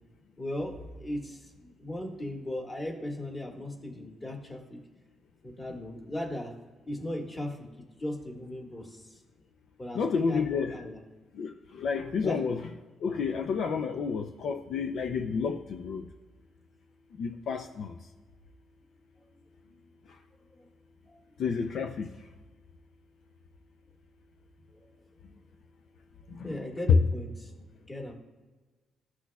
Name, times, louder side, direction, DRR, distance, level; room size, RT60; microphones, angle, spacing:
voice 1, 0.4-4.8 5.4-6.6 6.9-9.2 9.8-11.0 12.2-12.4 20.6-20.7 21.1-21.2 24.7-24.8 26.4-27.5 27.9-28.1, left 1 dB, 25° left, 1 dB, 1.8 m, -37 dB
voice 2, 9.9-10.8 11.3-12.7 13.0-16.0 17.2-17.9 21.4-22.1 26.3-26.6 26.9-27.0, left 5 dB, 65° left, 7 dB, 0.5 m, -29 dB
14.0 x 6.1 x 2.4 m, 1.3 s
cardioid pair, 90°, 0 cm